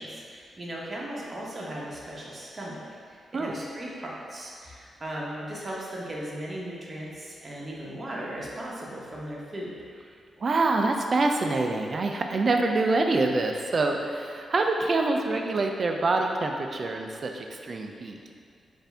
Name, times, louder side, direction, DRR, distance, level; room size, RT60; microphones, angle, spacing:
voice 1, 0.0-2.8 3.1-9.8, right 1 dB, 35° right, -4 dB, 0.9 m, -37 dB
voice 2, 10.4-18.2, right 3 dB, 55° right, 3 dB, 0.4 m, -26 dB
4.2 x 2.6 x 3.4 m, 2.2 s
cardioid pair, 55°, 0 cm